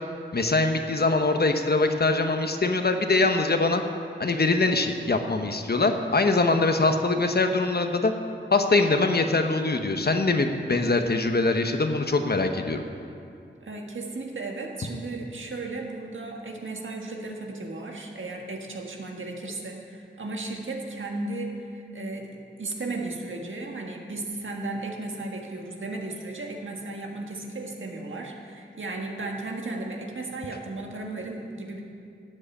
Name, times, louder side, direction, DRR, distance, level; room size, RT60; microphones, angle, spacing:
voice 1, 0.3-3.8 4.2-8.1 8.5-12.8, left 3 dB, 55° left, 6 dB, 1.1 m, -23 dB
voice 2, 13.6-31.8, right 2 dB, 85° right, 1 dB, 1.6 m, -35 dB
12.0 x 7.6 x 8.7 m, 2.4 s
wide cardioid pair, 60°, 20 cm